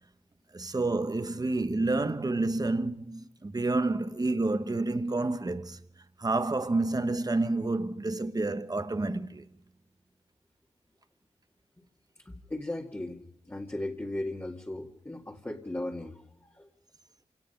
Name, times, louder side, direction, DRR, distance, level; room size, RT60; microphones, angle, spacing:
voice 1, 0.5-5.8 6.2-9.4, right 2 dB, 35° right, 1.3 m, -29 dB
voice 2, 12.3-16.7, left 1 dB, 20° left, 2.2 m, -37 dB
27.0 x 18.5 x 5.6 m
cardioid pair, 55°, 12 cm